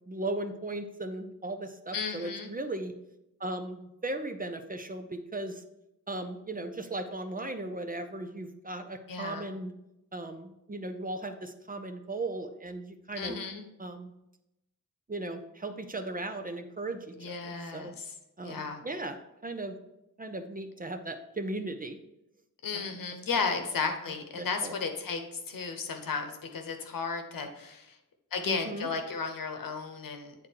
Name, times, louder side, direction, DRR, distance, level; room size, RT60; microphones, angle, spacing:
voice 1, 0.1-2.9 3.4-5.6 6.1-9.7 10.1-13.4 13.8-14.1 15.1-17.9 18.4-19.2 19.4-19.8 20.2-22.0 22.7-22.9 24.4-24.8 28.4-28.9, right 2 dB, 25° right, 6 dB, 0.6 m, -37 dB
voice 2, 1.9-2.5 9.1-9.5 13.2-13.6 17.2-18.1 18.4-18.8 22.6-28.0 28.3-30.3, left 5 dB, 70° left, 5 dB, 1.0 m, -34 dB
8.8 x 3.7 x 4.6 m, 0.87 s
wide cardioid pair, 110°, 34 cm